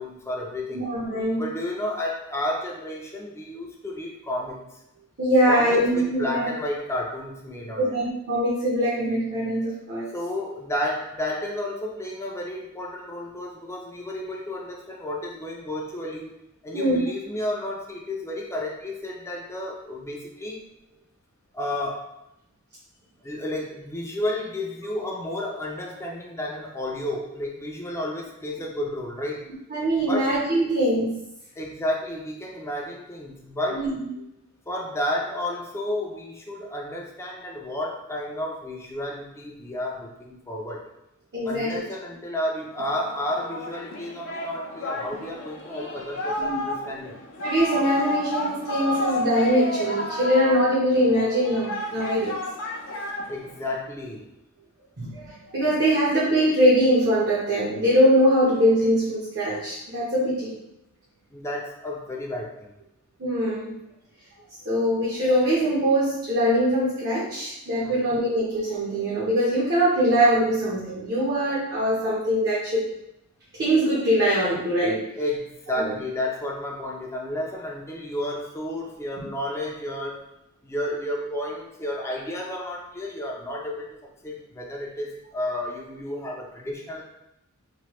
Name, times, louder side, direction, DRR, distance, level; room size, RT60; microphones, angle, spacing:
voice 1, 0.0-0.9 1.4-4.6 5.5-7.9 10.1-16.3 16.6-20.6 21.5-22.0 23.2-29.4 30.0-30.3 31.6-33.9 34.7-40.9 41.4-47.1 53.3-54.3 61.3-62.7 67.8-68.2 75.1-80.2 80.6-84.0 84.2-87.0, left 1 dB, 10° left, -1 dB, 0.4 m, -31 dB
voice 2, 0.7-1.4 5.2-6.5 7.8-10.1 16.7-17.0 29.7-31.1 33.7-34.1 41.3-41.7 46.4-46.6 47.4-52.4 55.0-60.6 63.2-63.8 64.6-72.9 73.6-75.0 75.8-75.9, equal, 50° right, -7 dB, 0.7 m, -22 dB
Singing, 42.8-53.8, left 2 dB, 60° left, 0.6 m, -31 dB
3.1 x 2.2 x 2.9 m, 0.85 s
head